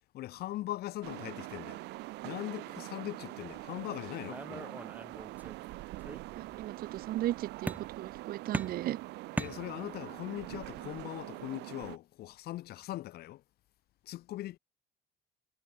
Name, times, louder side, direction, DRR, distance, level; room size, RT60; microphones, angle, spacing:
voice 1, 0.1-1.8 2.2-4.7 9.3-13.4 14.0-14.6, left 15 dB, 65° left, 0.8 m, -40 dB
sound 1, 1.0-12.0, right 20 dB, 90° right, 3.0 m, -44 dB
sound 2, 4.3-5.7 6.0-6.7 7.7-8.2 8.5-10.1, right 2 dB, 10° right, 0.6 m, -40 dB
voice 2, 6.4-9.0, right 14 dB, 65° right, 0.7 m, -36 dB
cardioid pair, 110°, 17 cm